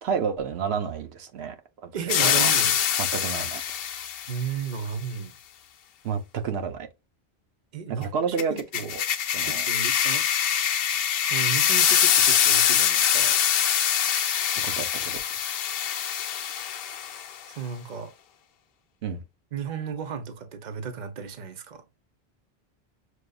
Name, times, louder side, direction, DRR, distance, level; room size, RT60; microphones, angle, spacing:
voice 1, 0.0-2.5 3.0-3.6 6.0-6.9 7.9-8.5 8.8-9.0 9.3-9.7 14.6-15.2 19.0-19.2, right 6 dB, 90° right, 1.0 m, -30 dB
voice 2, 1.9-2.8 4.3-5.3 7.7-8.9 9.4-10.3 11.3-13.4 17.6-18.1 19.5-21.8, right 7 dB, 50° right, 0.8 m, -34 dB
sound 1, 2.1-4.4 8.4-17.3, left 9 dB, 70° left, 0.7 m, -24 dB
6.4 x 2.3 x 2.3 m
omnidirectional pair, 1.1 m